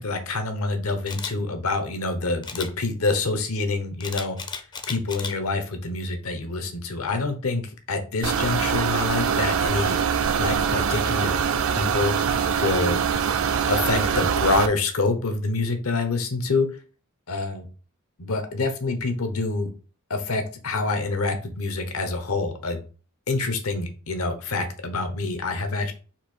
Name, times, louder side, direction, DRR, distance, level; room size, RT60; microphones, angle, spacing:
voice 1, 0.0-4.4 4.9-10.0 10.4-11.3 11.8-12.1 12.6-13.0 13.7-16.7 17.3-17.7 18.2-19.7 20.1-22.8 23.3-25.9, left 3 dB, 80° left, 7 dB, 0.9 m, -26 dB
Camera, 1.1-1.3 2.4-2.7 4.0-5.3 5.8-6.1, left 5 dB, 20° left, 0.4 m, -34 dB
sound 1, 8.2-14.7, right 7 dB, 65° right, 0.5 m, -23 dB
4.3 x 2.7 x 4.4 m, 0.36 s
head